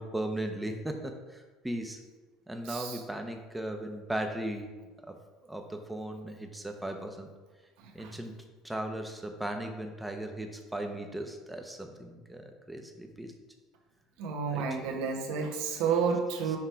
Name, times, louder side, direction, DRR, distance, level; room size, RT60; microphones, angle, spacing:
voice 1, 0.0-2.0 2.5-4.7 5.0-5.1 5.5-7.3 7.9-8.3 8.6-13.3 14.5-14.8 15.9-16.0 16.4-16.6, right 1 dB, 5° right, 4 dB, 0.7 m, -37 dB
voice 2, 14.2-16.6, right 6 dB, 75° right, 2 dB, 1.1 m, -30 dB
6.0 x 3.2 x 5.6 m, 1.3 s
supercardioid pair, 120°, 0 cm